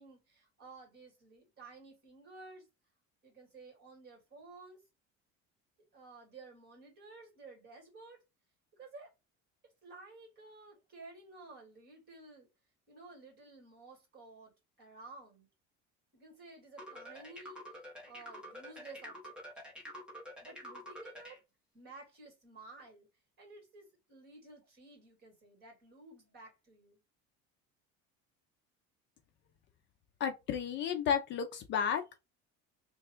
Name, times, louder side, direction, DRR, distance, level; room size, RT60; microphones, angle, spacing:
voice 1, 0.0-2.7 3.2-4.8 5.9-8.2 8.7-9.1 9.8-12.5 12.9-15.5 16.1-19.4 20.4-21.4 21.7-23.1 23.4-27.0, right 3 dB, 35° right, 2.3 m, -54 dB
sound 1, 16.8-21.4, equal, 5° right, 0.9 m, -48 dB
voice 2, 30.2-32.0, left 8 dB, 40° left, 0.4 m, -32 dB
3.3 x 2.3 x 4.3 m
cardioid pair, 175°, 29 cm